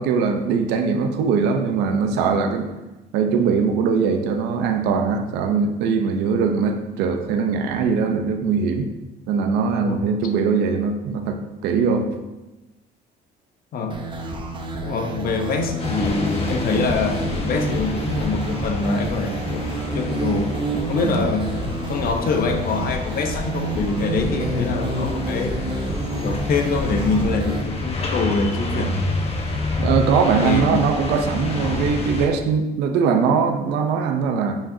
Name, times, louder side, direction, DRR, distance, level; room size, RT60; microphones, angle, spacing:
voice 1, 0.0-2.7 3.1-8.9 9.3-12.1 21.0-21.2 29.8-34.6, right 5 dB, 90° right, 5 dB, 0.8 m, -21 dB
sound 1, 13.9-27.6, right 2 dB, 30° right, 0.9 m, -28 dB
voice 2, 14.8-20.5 20.9-25.7 26.1-29.0 30.4-30.9, left 4 dB, 60° left, 5 dB, 0.9 m, -24 dB
sound 2, 15.8-32.3, left 2 dB, 35° left, 1.2 m, -29 dB
8.8 x 5.1 x 2.8 m, 1.1 s
cardioid pair, 110°, 17 cm